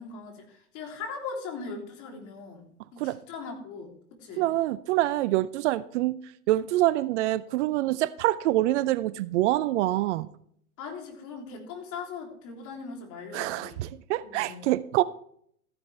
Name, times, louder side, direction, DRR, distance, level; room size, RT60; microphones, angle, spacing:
voice 1, 0.0-4.4 10.8-13.8 14.2-14.6, left 4 dB, 40° left, 3.4 m, -40 dB
voice 2, 4.4-6.2 6.5-10.3 13.3-15.0, right 15 dB, 50° right, 0.5 m, -26 dB
14.5 x 9.8 x 3.4 m
hypercardioid pair, 105°, 45 cm